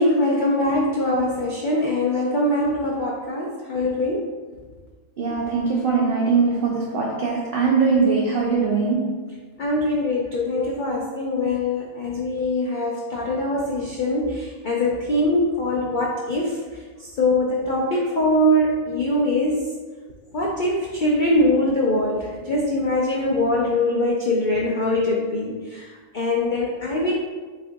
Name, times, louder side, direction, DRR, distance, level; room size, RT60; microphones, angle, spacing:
voice 1, 0.0-4.2 9.6-16.6 17.0-19.7 20.3-25.9 26.1-27.1, left 1 dB, 80° left, -3 dB, 0.4 m, -22 dB
voice 2, 5.2-9.2, right 4 dB, 65° right, -2 dB, 0.5 m, -21 dB
7.3 x 2.5 x 2.6 m, 1.5 s
omnidirectional pair, 1.5 m